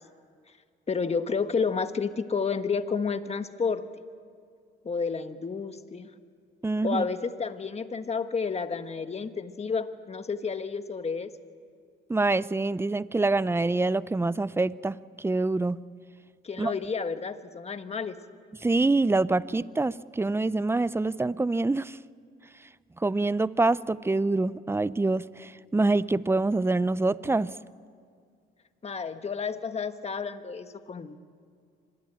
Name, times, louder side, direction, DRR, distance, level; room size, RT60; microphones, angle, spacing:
voice 1, 0.9-3.8 4.8-6.1 6.8-11.3 16.4-18.2 28.8-31.2, left 5 dB, 30° left, 9 dB, 1.4 m, -30 dB
voice 2, 6.6-7.0 12.1-15.8 16.6-16.7 18.6-22.0 23.0-27.5, right 2 dB, 10° right, 18 dB, 0.6 m, -26 dB
26.0 x 20.0 x 8.9 m, 2.2 s
cardioid pair, 90°, 20 cm